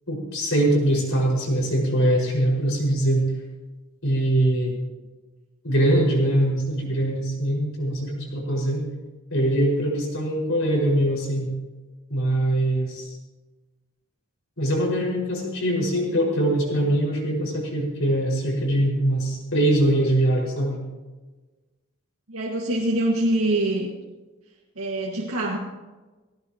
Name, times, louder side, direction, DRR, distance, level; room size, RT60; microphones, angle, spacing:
voice 1, 0.1-3.2 4.0-4.8 5.6-8.9 9.3-11.5 12.1-13.1 14.6-20.8, right 1 dB, 65° left, -2 dB, 5.6 m, -22 dB
voice 2, 22.3-23.9 24.8-25.6, right 1 dB, 90° right, -3 dB, 1.9 m, -24 dB
18.0 x 17.5 x 3.0 m, 1.2 s
head